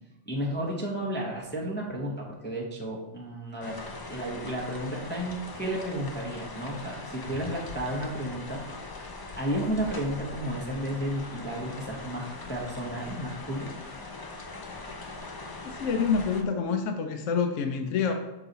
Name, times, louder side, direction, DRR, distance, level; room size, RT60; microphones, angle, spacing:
voice 1, 0.3-3.8 4.1-8.6 9.3-13.7, equal, 10° left, -3 dB, 0.7 m, -32 dB
sound 1, 3.6-16.4, left 3 dB, 35° left, 0.3 m, -41 dB
voice 2, 15.6-18.1, left 5 dB, 80° left, 5 dB, 1.0 m, -27 dB
6.1 x 4.0 x 4.0 m, 0.98 s
omnidirectional pair, 1.3 m